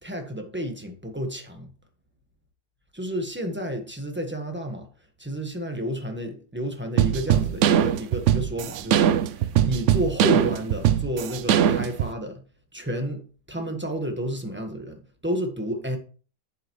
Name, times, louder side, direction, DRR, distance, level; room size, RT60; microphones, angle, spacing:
voice 1, 0.0-1.7 2.9-4.9 5.2-12.4 12.7-13.2 13.5-16.0, equal, 5° right, 1.3 m, -31 dB
sound 1, 7.0-12.1, right 10 dB, 75° right, 0.6 m, -21 dB
10.0 x 7.9 x 3.2 m
omnidirectional pair, 1.8 m